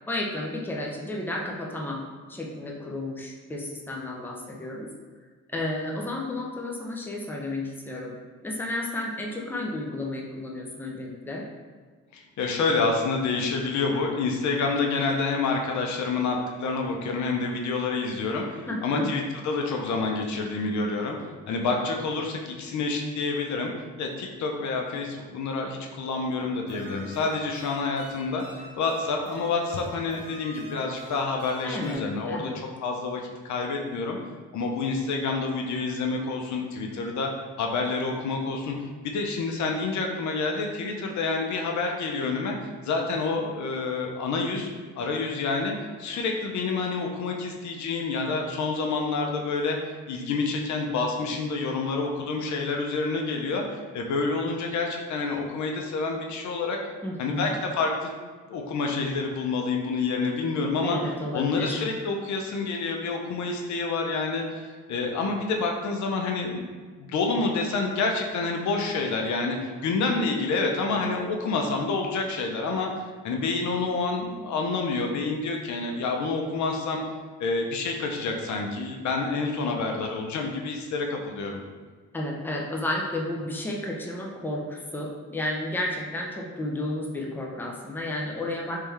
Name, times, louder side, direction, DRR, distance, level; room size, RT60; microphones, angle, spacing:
voice 1, 0.1-4.9 5.5-8.2 8.4-11.5 18.7-19.1 31.6-32.6 57.0-57.6 60.8-61.9 82.1-88.8, left 1 dB, 5° left, -1 dB, 0.6 m, -32 dB
voice 2, 12.1-21.2 21.5-23.7 24.0-32.5 32.8-34.2 34.5-37.3 37.6-38.8 39.0-42.6 42.8-44.7 45.0-49.8 50.1-56.8 57.2-58.1 58.5-61.0 61.3-66.6 67.0-72.9 73.2-77.0 77.4-81.6, left 3 dB, 70° left, 2 dB, 0.6 m, -28 dB
sound 1, 26.7-31.9, right 1 dB, 80° right, 1.1 m, -46 dB
3.4 x 3.2 x 3.3 m, 1.5 s
cardioid pair, 90°, 30 cm